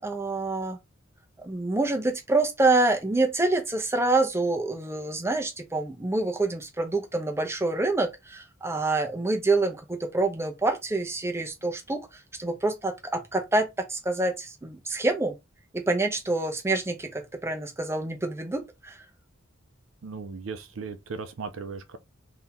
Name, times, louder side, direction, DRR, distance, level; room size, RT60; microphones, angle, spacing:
voice 1, 0.0-0.8 1.4-12.1 12.4-15.4 15.7-19.0, right 2 dB, 15° right, 0.6 m, -26 dB
voice 2, 20.0-22.0, right 4 dB, 75° right, 0.5 m, -37 dB
2.8 x 2.7 x 3.4 m
head